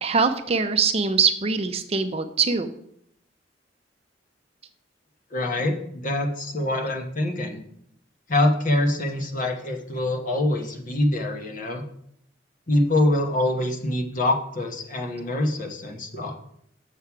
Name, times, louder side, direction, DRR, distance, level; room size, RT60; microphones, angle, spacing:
voice 1, 0.0-2.7, right 5 dB, 35° right, 8 dB, 0.6 m, -23 dB
voice 2, 5.3-7.6 8.3-11.8 12.7-16.4, left 1 dB, 45° left, 3 dB, 1.2 m, -25 dB
7.3 x 6.6 x 4.7 m, 0.71 s
head